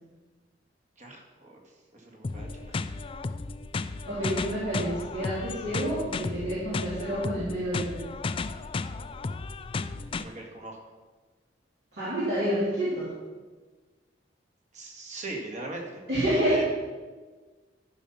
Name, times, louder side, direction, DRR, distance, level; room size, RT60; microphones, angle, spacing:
voice 1, 1.0-2.8 10.2-10.9 14.7-16.0 16.3-16.6, right 2 dB, 40° right, 0 dB, 1.9 m, -40 dB
sound 1, 2.2-10.2, left 3 dB, 30° left, 0.3 m, -34 dB
voice 2, 4.1-8.1 11.9-13.1 16.1-16.6, equal, 65° right, -11 dB, 3.5 m, -28 dB
13.0 x 5.6 x 5.8 m, 1.3 s
head